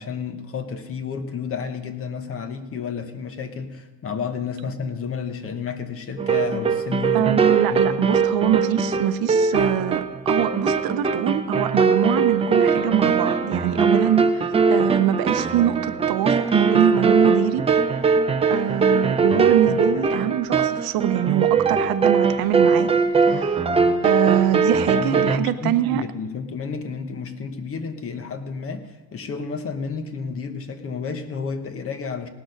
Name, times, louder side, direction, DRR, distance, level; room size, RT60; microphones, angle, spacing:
voice 1, 0.0-8.0 24.9-32.3, left 5 dB, 35° left, 9 dB, 1.0 m, -31 dB
sound 1, 6.2-25.4, right 5 dB, 15° right, 0.4 m, -21 dB
voice 2, 7.1-17.7 18.5-23.7 24.0-26.0, right 11 dB, 70° right, 12 dB, 0.7 m, -24 dB
18.0 x 6.3 x 6.4 m, 1.3 s
cardioid pair, 165°, 37 cm